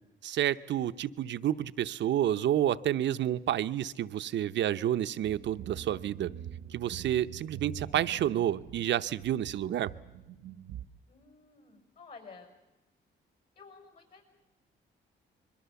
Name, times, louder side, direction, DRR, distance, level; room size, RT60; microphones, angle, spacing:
voice 1, 0.2-6.3 6.7-9.9, right 11 dB, 65° right, 13 dB, 0.8 m, -29 dB
sound 1, 5.2-10.8, right 10 dB, 90° right, 1.2 m, -45 dB
voice 2, 11.1-12.5 13.6-14.2, left 4 dB, 50° left, 6 dB, 6.5 m, -52 dB
26.0 x 22.0 x 7.0 m, 1.0 s
cardioid pair, 90°, 20 cm